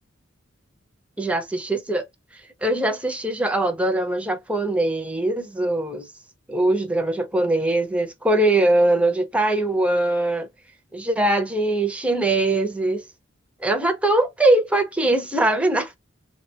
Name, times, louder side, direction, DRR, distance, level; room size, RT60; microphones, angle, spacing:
voice 1, 1.2-2.0 2.6-6.1 6.5-10.5 10.9-13.0 13.6-15.9, right 2 dB, 5° right, 0.4 m, -21 dB
3.2 x 2.1 x 2.7 m
head